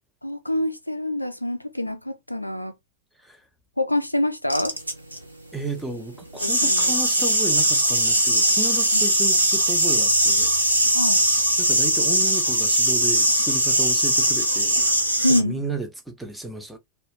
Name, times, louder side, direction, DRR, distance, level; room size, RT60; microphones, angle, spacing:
voice 1, 0.2-2.7 3.8-4.8 6.4-6.9 8.9-9.0 10.9-11.2 15.2-15.6, left 1 dB, 85° left, 0.4 m, -26 dB
sound 1, 4.5-5.2 6.3-15.4, right 1 dB, 85° right, 0.6 m, -20 dB
voice 2, 5.5-10.5 11.6-14.8 15.4-16.8, right 2 dB, 5° right, 0.6 m, -33 dB
2.3 x 2.1 x 3.2 m
figure-of-eight pair, 90°, 0 cm